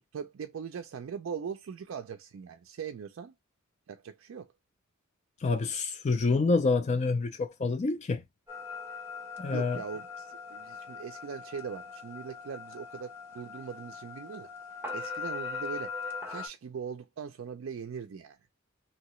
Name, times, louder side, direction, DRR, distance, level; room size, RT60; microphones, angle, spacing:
voice 1, 0.1-3.3 3.9-4.5 9.5-14.5 14.9-16.0 16.3-18.4, right 6 dB, 70° right, 0.4 m, -40 dB
voice 2, 5.4-8.2 9.4-9.8, left 3 dB, 35° left, 0.4 m, -27 dB
sound 1, 8.5-16.5, left 5 dB, 10° right, 0.9 m, -40 dB
2.9 x 2.8 x 3.0 m
head